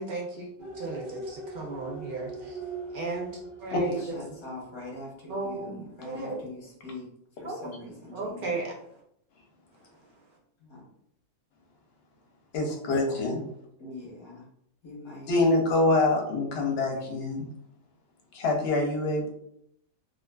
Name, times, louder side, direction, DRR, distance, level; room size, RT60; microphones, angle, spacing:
voice 1, 0.0-2.6 2.9-3.3 3.6-4.0 4.3-4.4 5.3-5.7 6.0-6.5 7.4-7.7 8.1-8.7, right 3 dB, 60° right, -1 dB, 0.5 m, -35 dB
sound 1, 0.6-5.1 5.5-5.6, right 3 dB, 5° right, 0.7 m, -41 dB
voice 2, 3.8-7.1 7.4-8.6 10.6-10.8 12.8-13.3 13.8-14.5 14.8-15.5 15.8-15.9 16.9-17.2, left 2 dB, 30° left, -3 dB, 0.6 m, -43 dB
voice 3, 12.5-13.4 15.3-17.5 18.3-19.3, left 2 dB, 60° left, 1 dB, 0.7 m, -25 dB
2.4 x 2.3 x 2.2 m, 0.73 s
omnidirectional pair, 1.4 m